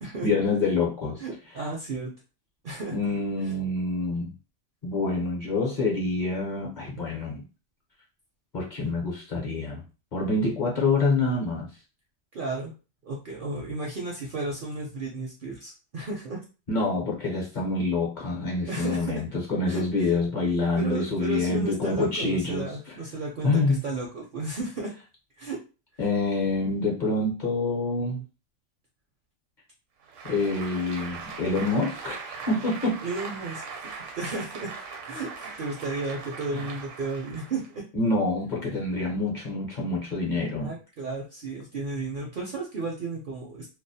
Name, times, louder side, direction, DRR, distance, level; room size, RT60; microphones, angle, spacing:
voice 1, 0.2-1.2 2.9-4.3 4.8-7.4 8.5-9.8 10.1-11.7 16.7-22.7 23.4-23.8 26.0-28.2 30.2-33.0 36.5-36.6 37.9-40.7, left 3 dB, 50° left, -2 dB, 0.6 m, -26 dB
voice 2, 1.2-2.1 2.6-3.0 12.3-12.7 13.0-16.4 18.6-19.2 19.7-20.1 20.8-24.9 25.4-25.6 33.0-33.8 34.2-34.7 35.1-37.8 40.6-43.7, right 3 dB, 60° right, -2 dB, 0.6 m, -33 dB
Applause, 30.0-37.8, right 5 dB, 75° right, 0.9 m, -40 dB
2.3 x 2.1 x 2.6 m, 0.33 s
omnidirectional pair, 1.3 m